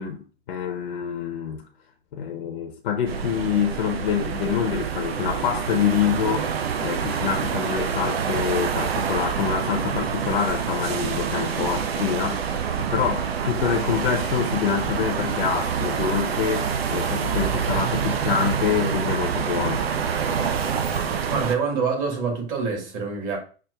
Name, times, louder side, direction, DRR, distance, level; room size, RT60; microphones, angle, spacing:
voice 1, 0.0-1.6 2.1-19.9, left 8 dB, 55° left, 0.6 m, -26 dB
sound 1, 3.1-21.6, right 7 dB, 75° right, 0.5 m, -26 dB
voice 2, 21.3-23.4, right 5 dB, 40° right, 1.5 m, -26 dB
5.8 x 2.4 x 2.2 m
figure-of-eight pair, 110°, 31 cm